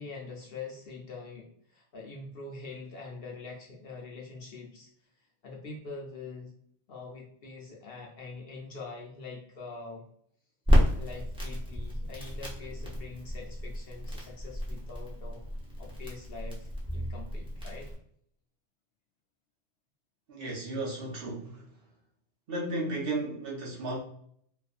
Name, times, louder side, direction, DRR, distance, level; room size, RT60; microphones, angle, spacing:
voice 1, 0.0-4.9 5.4-6.5 6.9-10.0 11.0-15.4 15.8-17.9, left 4 dB, 60° left, 0.7 m, -44 dB
Crackle, 10.6-17.9, equal, 5° right, 0.5 m, -31 dB
voice 2, 20.3-21.7 22.5-24.0, right 2 dB, 55° right, 0.8 m, -34 dB
2.5 x 2.4 x 2.4 m
omnidirectional pair, 1.2 m